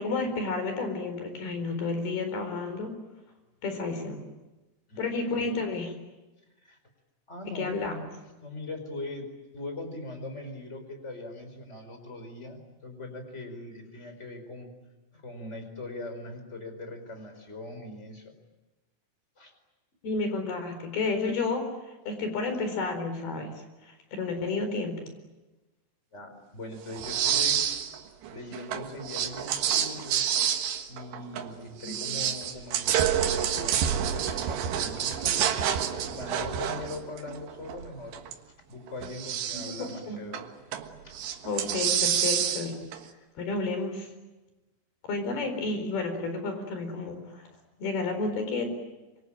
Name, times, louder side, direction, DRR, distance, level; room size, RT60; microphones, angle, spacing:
voice 1, 0.0-2.9 3.6-4.2 5.0-5.9 7.5-8.0 20.0-25.1 31.8-32.2 39.8-40.2 41.4-42.7 43.0-44.1 45.0-47.5 47.8-48.7, left 3 dB, 65° left, 7 dB, 6.2 m, -31 dB
voice 2, 4.9-5.4 6.6-6.8 7.3-8.1 8.4-9.3 9.5-14.7 15.1-18.3 19.4-19.5 26.1-27.8 28.3-30.3 30.9-35.8 36.0-38.2 38.7-40.5 41.0-41.2, left 2 dB, 15° left, 6 dB, 4.7 m, -41 dB
sound 1, 26.9-28.0 28.2-31.5 31.8-38.3 38.9-39.9 40.3-40.9 41.1-43.0, right 9 dB, 80° right, 3.7 m, -28 dB
26.0 x 25.5 x 8.9 m, 1.1 s
omnidirectional pair, 4.9 m